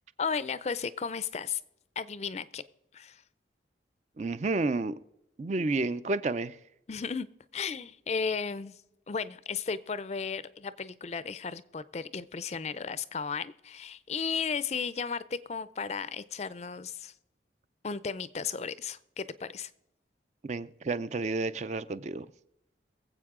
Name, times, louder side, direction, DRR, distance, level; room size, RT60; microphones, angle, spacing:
voice 1, 0.2-1.6 2.0-2.6 2.9-3.2 6.9-7.3 7.5-8.7 9.1-17.1 17.8-19.7, left 5 dB, 35° left, 0.4 m, -34 dB
voice 2, 4.2-5.0 5.4-6.6 20.4-22.3, right 3 dB, 40° right, 0.4 m, -30 dB
23.0 x 7.9 x 3.7 m
head